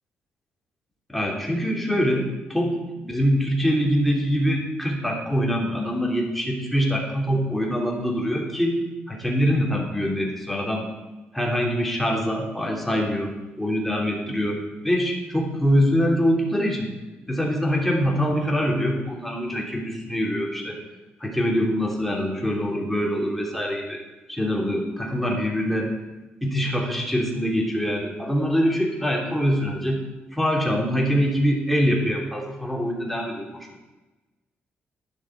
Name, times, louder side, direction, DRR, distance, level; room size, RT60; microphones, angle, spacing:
voice 1, 1.1-8.8 9.1-10.9 11.3-16.9 17.3-20.8 21.2-24.0 24.3-25.9 26.4-30.0 30.3-33.8, equal, 5° left, -1 dB, 3.0 m, -24 dB
11.5 x 10.5 x 4.8 m, 1.1 s
cardioid pair, 95°, 4 cm